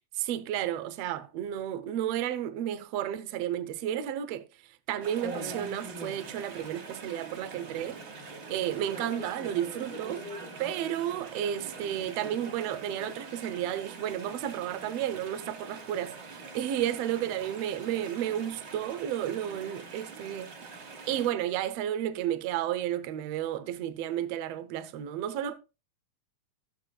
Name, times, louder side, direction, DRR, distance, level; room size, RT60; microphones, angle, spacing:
voice 1, 0.2-4.5 4.9-8.0 8.3-10.2 10.6-20.5 21.1-25.5, right 11 dB, 70° right, 1.7 m, -32 dB
Chatter / Stream, 5.0-21.3, right 3 dB, 45° right, 2.0 m, -43 dB
16.0 x 7.0 x 2.2 m
omnidirectional pair, 3.3 m